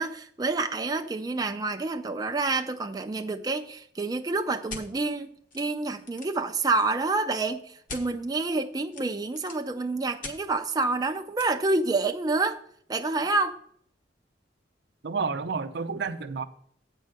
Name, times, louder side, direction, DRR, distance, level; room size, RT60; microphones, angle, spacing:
voice 1, 0.0-5.3 5.5-12.6 12.9-13.6, right 3 dB, 20° right, 0.4 m, -28 dB
sound 1, 4.7-4.9 5.5-5.6 5.9-6.4 7.9-8.0 8.9-9.7 10.2-10.4 11.4-11.5, left 3 dB, 45° left, 1.3 m, -40 dB
voice 2, 15.0-16.4, right 5 dB, 65° right, 0.6 m, -30 dB
8.4 x 4.6 x 6.4 m
head